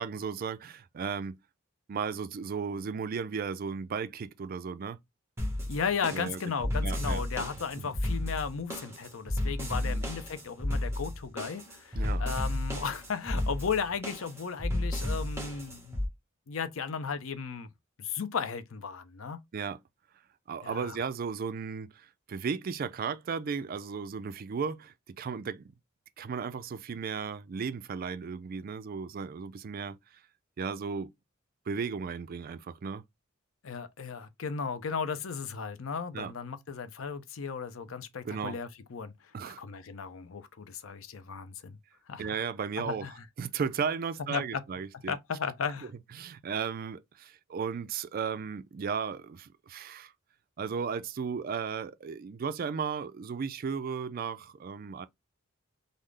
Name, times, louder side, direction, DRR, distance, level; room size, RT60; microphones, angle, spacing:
voice 1, 0.0-1.4 1.9-5.0 6.1-7.2 7.8-7.9 9.8-10.0 11.9-12.2 19.5-19.8 20.5-25.7 26.2-30.0 30.6-31.1 31.7-33.0 36.1-36.3 38.2-38.6 39.3-39.6 42.2-43.1 43.4-45.2 46.2-50.1 50.6-55.1, right 6 dB, 45° right, 0.3 m, -35 dB
sound 1, 5.4-16.1, left 1 dB, 15° right, 1.2 m, -33 dB
voice 2, 5.7-16.0 16.5-17.7 18.0-19.4 20.6-21.0 33.6-39.1 39.5-41.8 42.1-42.4 42.8-43.2 44.3-44.6 45.1-45.9, left 6 dB, 85° left, 0.6 m, -35 dB
3.7 x 2.0 x 3.2 m
head